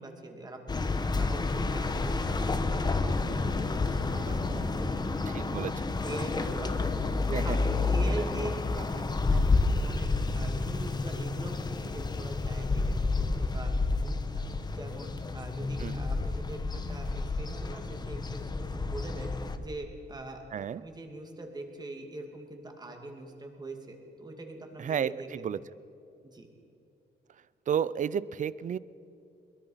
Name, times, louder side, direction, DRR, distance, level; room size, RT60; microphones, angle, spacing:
voice 1, 0.0-3.5 3.8-5.7 6.0-7.0 7.3-10.1 10.3-13.7 14.0-19.3 19.6-25.5 26.2-26.5, right 2 dB, 20° right, 3 dB, 2.6 m, -43 dB
sound 1, 0.7-19.6, left 3 dB, 25° left, 1.1 m, -30 dB
voice 2, 5.3-5.7 7.3-7.6 15.8-16.0 20.5-20.8 24.8-25.6 27.7-28.8, right 8 dB, 45° right, 18 dB, 0.5 m, -31 dB
22.5 x 22.0 x 5.7 m, 2.7 s
wide cardioid pair, 165°, 18 cm